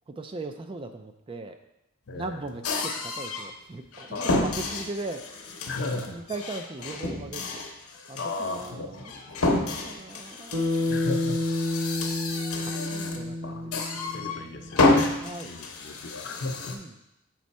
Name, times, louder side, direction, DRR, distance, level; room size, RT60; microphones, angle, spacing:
voice 1, 0.1-1.6 2.1-5.4 6.1-7.6 8.1-9.1 9.5-10.9 12.6-12.8 13.2-14.9 15.2-15.5 16.7-16.9, right 2 dB, 25° right, 6 dB, 0.3 m, -39 dB
voice 2, 2.1-2.4 4.1-4.6 5.7-6.2 8.1-9.4 10.9-11.4 13.2-13.6 14.1-15.2 15.4-16.8, left 2 dB, 55° left, 5 dB, 0.7 m, -35 dB
sound 1, 2.6-3.5 3.9-13.3 13.7-14.4 14.7-16.8, left 2 dB, 85° left, 0.9 m, -29 dB
Bass guitar, 10.5-15.0, left 2 dB, 70° right, 0.8 m, -30 dB
6.2 x 4.4 x 4.1 m, 0.87 s
head